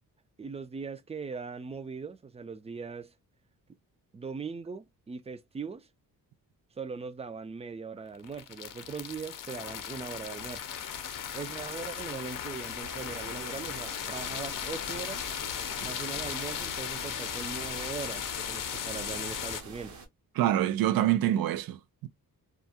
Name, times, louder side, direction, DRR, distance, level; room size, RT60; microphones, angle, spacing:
voice 1, 0.4-3.1 4.1-5.9 6.8-10.7 11.3-15.2 15.8-20.0, right 5 dB, 20° right, 0.4 m, -40 dB
sound 1, 8.1-19.6, left 8 dB, 65° left, 0.6 m, -37 dB
sound 2, 12.8-20.1, right 3 dB, 55° right, 0.9 m, -47 dB
voice 2, 20.4-22.1, right 12 dB, 80° right, 0.5 m, -26 dB
2.4 x 2.1 x 2.6 m
cardioid pair, 115°, 35 cm